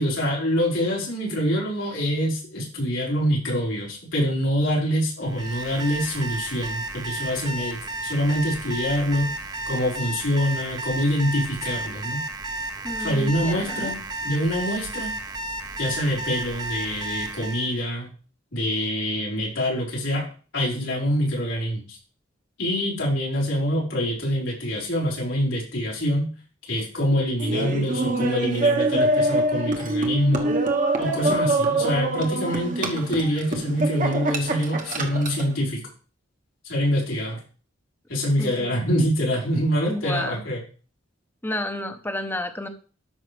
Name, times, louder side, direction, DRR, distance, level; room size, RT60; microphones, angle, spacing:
voice 1, 0.0-9.3 9.6-12.2 13.0-14.0 14.2-15.1 15.8-18.1 18.5-20.3 20.5-22.0 22.6-26.3 26.7-30.5 31.0-35.8 36.6-37.4 38.1-40.6, equal, 85° left, -4 dB, 4.5 m, -25 dB
Alarm, 5.2-17.7, right 2 dB, 20° right, 0.8 m, -33 dB
voice 2, 12.8-13.9 38.4-38.8 39.9-40.4 41.4-42.7, left 1 dB, 10° left, 7 dB, 0.9 m, -31 dB
Laughter, 27.4-35.5, right 2 dB, 45° right, 1.1 m, -24 dB
12.5 x 5.7 x 3.3 m, 0.37 s
head